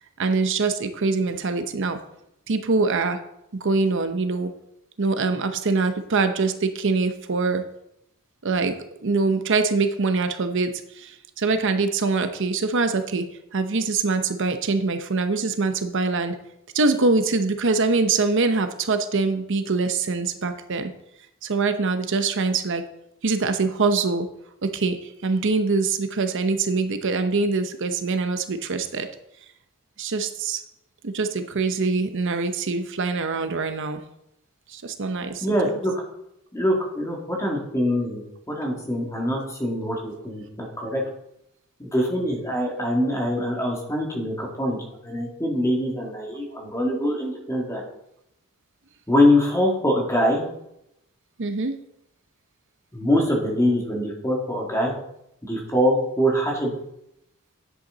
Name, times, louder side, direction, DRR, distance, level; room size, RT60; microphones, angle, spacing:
voice 1, 0.2-2.0 2.5-3.2 3.6-4.5 5.0-7.6 8.4-8.8 9.0-13.2 13.5-16.4 16.7-20.9 21.4-22.8 23.2-24.3 24.6-29.1 30.0-30.6 31.0-34.0 34.7-35.6 51.4-51.8, right 3 dB, 60° right, 8 dB, 0.8 m, -24 dB
voice 2, 35.4-35.9 36.5-38.2 38.5-41.0 41.8-47.8 49.1-50.4 52.9-54.9 55.5-56.7, left 1 dB, 15° left, -1 dB, 2.2 m, -23 dB
10.0 x 8.2 x 3.9 m, 0.80 s
head